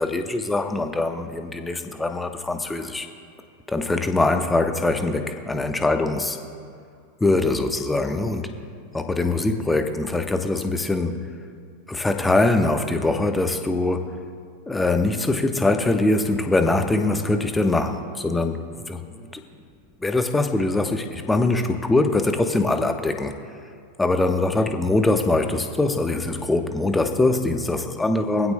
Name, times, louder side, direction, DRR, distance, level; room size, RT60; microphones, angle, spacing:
voice 1, 0.0-3.1 3.7-6.4 7.2-8.5 8.9-11.3 11.9-14.2 14.7-19.4 20.0-23.3 24.0-28.5, left 2 dB, 10° left, 6 dB, 1.1 m, -23 dB
23.5 x 15.5 x 2.3 m, 2.4 s
figure-of-eight pair, 90°, 0 cm